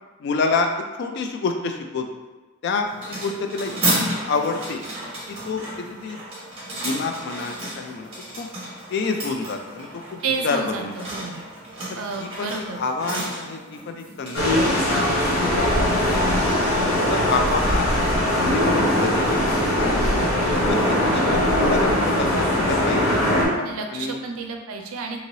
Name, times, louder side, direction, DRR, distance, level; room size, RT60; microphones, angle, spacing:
voice 1, 0.2-2.1 2.6-4.8 5.3-6.2 6.8-8.1 8.4-8.5 8.9-11.0 11.9-14.9 15.3-16.6 16.9-17.9 18.4-19.5 19.8-20.0 20.5-23.2 23.9-24.2, left 4 dB, 55° left, 4 dB, 0.3 m, -28 dB
sound 1, 2.8-15.9, right 1 dB, 25° right, 1.1 m, -32 dB
voice 2, 10.2-11.4 11.9-12.8 23.6-25.2, right 4 dB, 85° right, 3 dB, 0.4 m, -30 dB
sound 2, 14.3-23.5, left 1 dB, 80° left, 0.8 m, -20 dB
3.0 x 2.8 x 2.7 m, 1.2 s
head